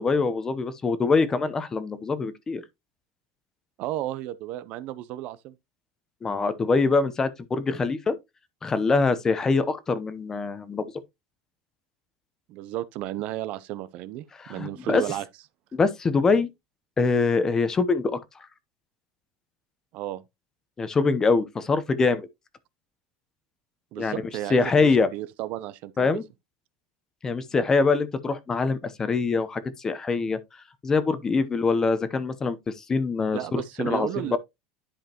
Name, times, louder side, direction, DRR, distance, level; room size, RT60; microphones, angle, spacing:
voice 1, 0.0-2.6 6.2-8.2 8.6-10.8 14.4-15.0 15.7-16.5 17.0-18.2 20.8-22.3 24.0-24.2 24.5-25.1 26.0-26.2 27.2-30.4 30.8-34.4, left 4 dB, 20° left, 0.8 m, -24 dB
voice 2, 3.8-5.5 12.5-15.2 19.9-20.2 23.9-26.2 33.3-34.4, right 14 dB, 50° right, 0.6 m, -33 dB
10.5 x 5.0 x 2.9 m
supercardioid pair, 140°, 3 cm